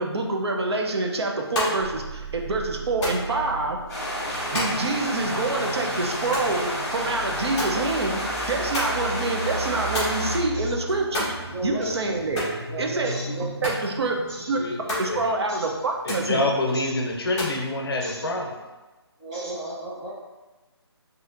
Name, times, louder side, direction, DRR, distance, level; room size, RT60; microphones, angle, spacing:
voice 1, 0.0-3.8 4.5-8.2 8.5-11.3 11.6-12.5 12.8-13.1 13.6-14.2 14.5-14.6 15.0-16.4, right 3 dB, 70° right, 2 dB, 0.6 m, -26 dB
sound 1, 1.3-17.6, left 1 dB, 15° left, 1.0 m, -36 dB
sound 2, 1.8-15.5, right 2 dB, 90° right, 1.3 m, -37 dB
sound 3, 3.9-10.4, equal, 40° left, 1.3 m, -30 dB
voice 2, 11.5-12.1 12.7-13.7 14.3-14.5 15.5-15.7 16.7-16.9 18.0-18.4 19.2-20.1, right 1 dB, 10° right, -9 dB, 0.5 m, -34 dB
voice 3, 14.6-15.3 16.0-18.5, left 2 dB, 60° left, 2 dB, 0.6 m, -26 dB
4.1 x 2.7 x 2.5 m, 1.2 s
hypercardioid pair, 165°, 14 cm